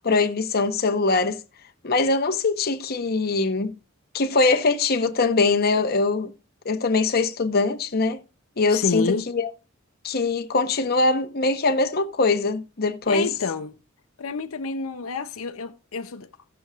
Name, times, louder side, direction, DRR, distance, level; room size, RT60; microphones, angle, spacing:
voice 1, 0.0-1.4 1.8-3.7 4.1-6.3 6.6-8.2 8.6-9.5 10.0-13.3, left 3 dB, 50° left, 0.9 m, -22 dB
voice 2, 8.7-9.3 13.1-13.8 14.2-16.3, left 4 dB, 85° left, 0.7 m, -28 dB
16.5 x 7.0 x 2.4 m
head